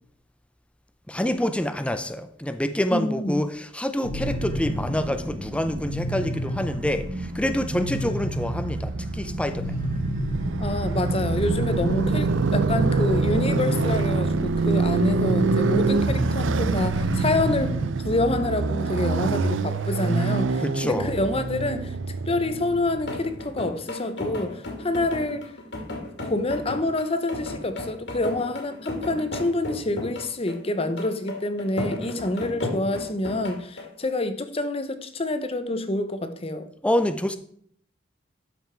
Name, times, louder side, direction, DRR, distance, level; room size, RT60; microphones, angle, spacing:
voice 1, 1.1-9.8 20.6-21.1 36.8-37.4, left 1 dB, 5° left, 0.5 m, -27 dB
voice 2, 2.9-3.4 10.6-17.8 18.0-21.9 22.3-25.5 26.2-36.7, left 2 dB, 30° left, 0.8 m, -27 dB
sound 1, 4.0-17.9, equal, 50° right, 3.6 m, -31 dB
Motorcycle, 5.2-23.4, right 4 dB, 80° right, 0.5 m, -26 dB
sound 2, 23.0-33.9, left 2 dB, 70° left, 2.5 m, -35 dB
12.5 x 5.3 x 4.5 m
head